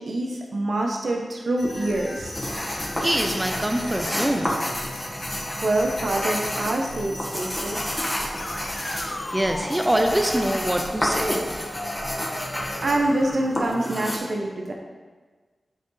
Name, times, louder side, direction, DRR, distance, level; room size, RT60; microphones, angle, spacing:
voice 1, 0.0-2.3 5.3-8.0 12.8-14.7, right 1 dB, 65° right, 0 dB, 0.8 m, -26 dB
sound 1, 1.6-13.7, left 1 dB, 45° left, 0.9 m, -37 dB
sound 2, 2.3-14.2, equal, 10° left, 1.3 m, -30 dB
voice 2, 2.7-4.6 8.4-11.7, right 1 dB, 15° right, 3 dB, 0.6 m, -25 dB
10.5 x 4.4 x 3.2 m, 1.4 s
wide cardioid pair, 90°, 0 cm